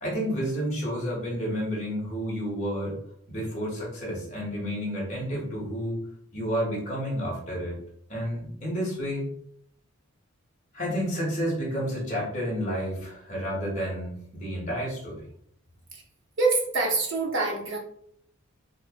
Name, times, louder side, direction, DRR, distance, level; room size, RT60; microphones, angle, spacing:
voice 1, 0.0-2.9 3.3-6.0 6.3-7.8 8.1-9.3 10.7-15.2, equal, 35° left, -4 dB, 1.4 m, -30 dB
voice 2, 16.4-17.8, right 3 dB, 55° right, -1 dB, 1.1 m, -25 dB
5.4 x 2.4 x 2.3 m, 0.66 s
head